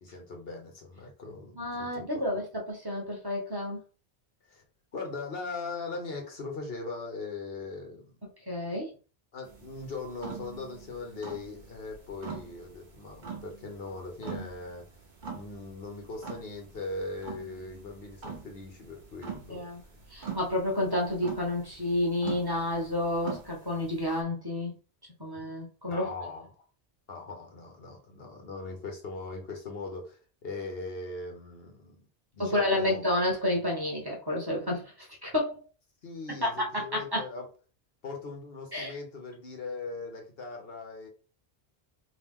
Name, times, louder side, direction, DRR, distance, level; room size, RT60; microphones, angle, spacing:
voice 1, 0.0-2.2 4.5-4.6 4.9-8.2 9.3-14.9 15.3-19.6 25.8-26.6 27.1-32.0 32.3-33.0 36.0-37.5 38.0-41.1, left 3 dB, 65° left, 1.2 m, -40 dB
voice 2, 1.6-3.8 8.5-8.9 19.5-19.8 20.1-24.7 25.2-26.1 32.4-34.8 35.2-35.6 37.1-37.2 38.7-39.0, left 1 dB, 25° right, 0.9 m, -30 dB
sound 1, 9.4-24.2, right 6 dB, 50° right, 1.0 m, -44 dB
3.0 x 2.8 x 3.6 m
omnidirectional pair, 1.1 m